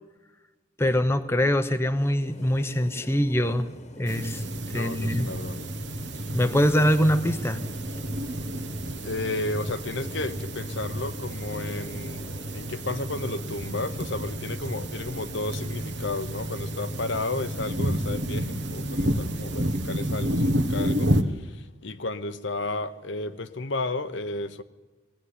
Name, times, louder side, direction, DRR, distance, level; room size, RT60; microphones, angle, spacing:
voice 1, 0.8-3.7 4.0-4.4 4.7-5.3 6.3-7.6, equal, 10° left, 0.8 m, -23 dB
sound 1, 1.9-19.7, left 1 dB, 35° left, 1.5 m, -47 dB
sound 2, 4.1-21.2, right 1 dB, 55° right, 1.3 m, -30 dB
voice 2, 4.7-5.6 9.0-24.6, left 2 dB, 60° left, 1.0 m, -33 dB
20.5 x 16.5 x 9.9 m
head